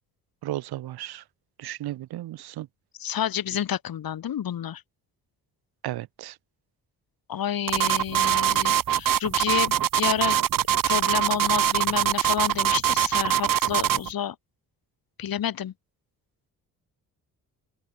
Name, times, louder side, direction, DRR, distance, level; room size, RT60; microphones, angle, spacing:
voice 1, 0.4-1.2 1.6-2.7 5.8-6.4, right 14 dB, 80° right, 2.7 m, -34 dB
voice 2, 3.0-4.8 7.3-10.4 10.8-14.4 15.2-15.7, left 10 dB, 65° left, 4.3 m, -29 dB
sound 1, 7.7-14.1, right 10 dB, 60° right, 1.8 m, -23 dB
open air
cardioid pair, 75°, 38 cm